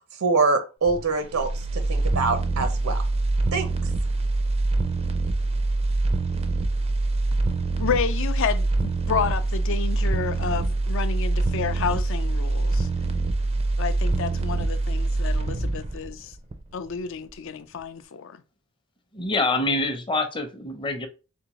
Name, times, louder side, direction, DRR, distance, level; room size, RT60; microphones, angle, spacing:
voice 1, 0.2-3.0 3.5-3.7, right 4 dB, 80° right, 0.6 m, -24 dB
sound 1, 0.9-16.9 17.3-17.4, right 2 dB, 30° right, 0.4 m, -25 dB
voice 2, 7.8-12.9 13.8-16.3 16.7-18.4, left 6 dB, 65° left, 0.4 m, -30 dB
voice 3, 19.1-21.1, left 2 dB, 25° left, 0.6 m, -25 dB
3.5 x 3.4 x 3.0 m
head